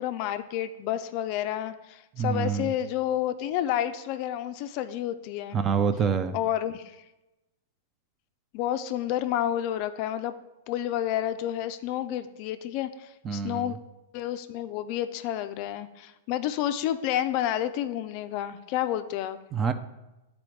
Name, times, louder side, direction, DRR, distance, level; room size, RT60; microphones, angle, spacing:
voice 1, 0.0-5.6 6.3-7.0 8.5-10.3 10.7-13.8 14.1-19.4, left 11 dB, 45° left, 10 dB, 0.4 m, -30 dB
voice 2, 2.2-2.7 5.5-6.3 13.2-13.8 19.5-19.7, right 6 dB, 20° right, 10 dB, 0.4 m, -26 dB
9.2 x 4.2 x 3.2 m, 1.0 s
hypercardioid pair, 135°, 0 cm